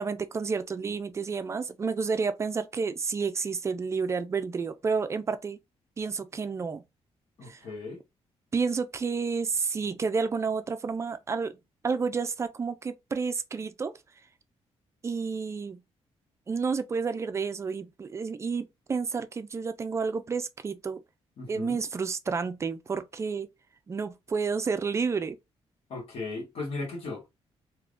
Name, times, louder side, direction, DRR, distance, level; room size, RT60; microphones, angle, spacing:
voice 1, 0.0-5.6 6.0-6.8 7.5-7.6 8.5-11.6 11.8-13.9 15.0-15.8 16.5-21.0 21.5-23.5 23.9-25.4, right 5 dB, 25° right, 0.4 m, -30 dB
voice 2, 7.4-8.0 21.4-21.8 25.9-27.3, left 3 dB, 65° left, 1.5 m, -37 dB
3.5 x 2.9 x 2.4 m
cardioid pair, 145°, 11 cm